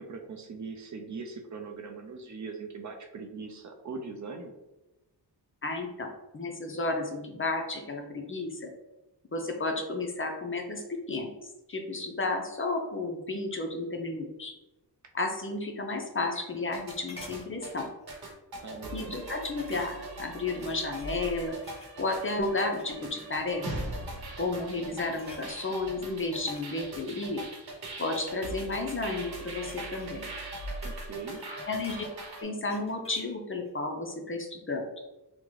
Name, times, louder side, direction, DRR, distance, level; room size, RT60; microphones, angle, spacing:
voice 1, 0.0-4.5 18.6-19.2 30.8-31.4, right 4 dB, 45° right, 3 dB, 0.5 m, -41 dB
voice 2, 5.6-6.1 6.3-8.7 9.3-11.3 11.7-14.5 15.1-17.9 18.9-21.6 22.0-23.6 24.4-27.4 28.0-30.2 31.7-32.0 32.4-34.8, left 2 dB, 30° left, 3 dB, 0.5 m, -32 dB
sound 1, 15.9-16.8 17.1-17.5 18.0-18.2 18.5-18.6 19.6-20.2 20.6-22.2 22.7-23.0 23.3-23.9 24.4-24.6 24.9-25.5 26.2-27.8 28.6-31.1 31.3-33.4 33.7-33.8, left 2 dB, 15° left, 0.9 m, -51 dB
sound 2, 16.7-32.4, right 2 dB, 60° right, 0.9 m, -40 dB
3.7 x 2.2 x 3.1 m, 1.0 s
cardioid pair, 80°, 42 cm